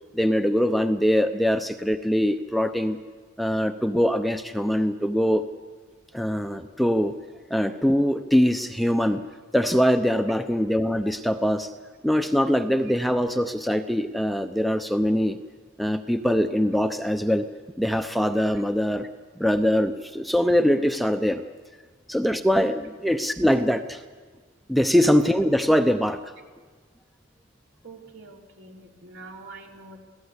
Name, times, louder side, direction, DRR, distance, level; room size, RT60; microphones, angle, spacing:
voice 1, 0.1-3.0 3.4-5.4 6.1-7.1 7.5-9.2 9.5-11.7 12.0-15.4 15.8-17.4 17.8-19.1 19.4-21.4 22.1-24.0 24.7-26.2, equal, ahead, 7 dB, 0.7 m, -22 dB
voice 2, 27.8-30.0, right 3 dB, 65° right, 1 dB, 3.4 m, -45 dB
27.5 x 17.5 x 8.2 m, 1.5 s
head